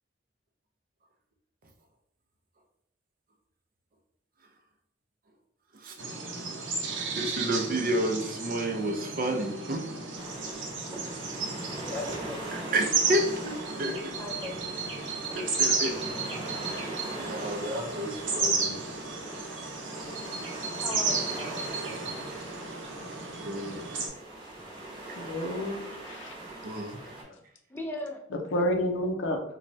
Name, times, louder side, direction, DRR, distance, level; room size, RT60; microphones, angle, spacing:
sound 1, 6.0-24.1, right 4 dB, 90° right, 0.7 m, -33 dB
voice 1, 7.0-9.8 12.5-14.1 15.3-16.0 16.3-18.8 23.4-23.8 26.6-27.0, right 1 dB, 50° right, 3 dB, 0.5 m, -31 dB
sound 2, 10.2-27.2, right 2 dB, 25° right, 0.9 m, -42 dB
voice 2, 11.8-12.4 14.2-14.7 20.8-21.7 27.7-28.2, left 1 dB, 10° left, 1 dB, 0.4 m, -38 dB
voice 3, 25.2-26.3 27.2-27.3 28.3-29.4, equal, 85° left, 4 dB, 0.5 m, -30 dB
3.1 x 2.2 x 2.6 m, 0.72 s
head